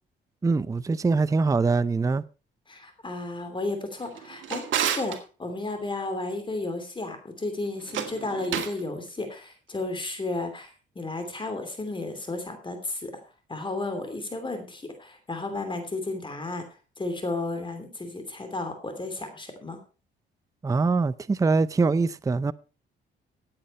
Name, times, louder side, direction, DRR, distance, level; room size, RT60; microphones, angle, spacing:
voice 1, 0.4-2.2 20.6-22.5, right 4 dB, 15° right, 0.5 m, -23 dB
voice 2, 2.7-4.6 4.9-10.7 10.9-13.1 13.5-16.6 17.0-19.8, left 2 dB, 25° left, 2.9 m, -33 dB
Drawer open or close, 4.0-5.2 7.8-8.8, right 9 dB, 75° right, 2.0 m, -30 dB
14.5 x 8.6 x 4.3 m
cardioid pair, 90°, 20 cm